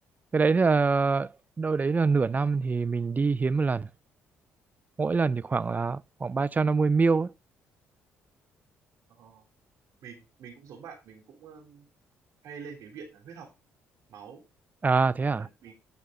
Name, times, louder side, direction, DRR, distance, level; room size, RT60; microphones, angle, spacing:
voice 1, 0.3-3.9 5.0-7.3 14.8-15.5, right 4 dB, 30° right, 0.4 m, -25 dB
voice 2, 9.1-9.4 10.0-11.9 12.4-13.5 14.1-14.4 15.2-15.7, right 6 dB, 70° right, 3.3 m, -46 dB
11.5 x 5.2 x 3.8 m
supercardioid pair, 60°, 6 cm